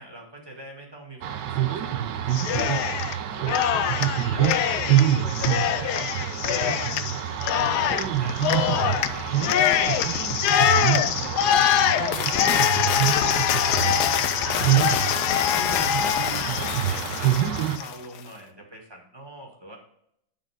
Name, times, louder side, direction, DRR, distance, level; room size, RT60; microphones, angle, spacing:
voice 1, 0.0-3.5 3.9-7.2 7.5-10.7 11.0-13.3 13.6-13.8 14.2-15.2 15.4-19.8, right 1 dB, 15° right, -1 dB, 1.7 m, -44 dB
sound 1, 1.2-17.8, right 11 dB, 70° right, 1.2 m, -26 dB
Cheering, 2.3-3.2 3.5-17.9, left 10 dB, 75° left, 0.9 m, -24 dB
9.9 x 4.2 x 4.9 m, 0.72 s
omnidirectional pair, 2.2 m